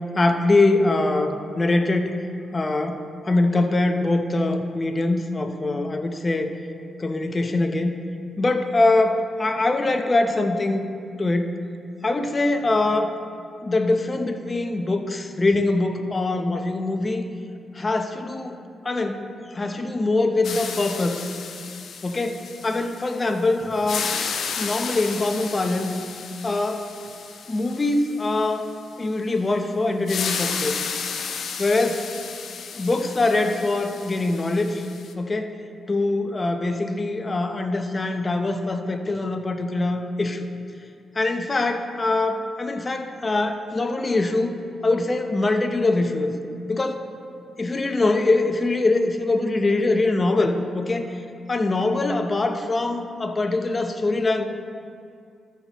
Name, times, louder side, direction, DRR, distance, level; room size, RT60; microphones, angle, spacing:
voice 1, 0.1-2.2 2.5-6.5 7.0-8.0 8.4-10.9 11.2-11.5 12.0-13.1 13.6-17.3 17.7-18.6 18.8-19.2 19.5-21.2 22.0-24.1 24.6-26.0 26.4-26.9 27.5-28.7 29.0-30.7 31.6-32.1 32.7-34.8 35.2-35.5 35.9-40.5 41.1-44.5 44.8-46.3 46.7-47.1 47.6-51.1 51.5-54.5, left 2 dB, 35° left, 6 dB, 0.8 m, -23 dB
sound 1, 20.4-23.4 23.7-28.5 30.1-35.1, left 6 dB, 70° left, 0.6 m, -33 dB
13.5 x 5.7 x 3.1 m, 2.4 s
supercardioid pair, 55°, 0 cm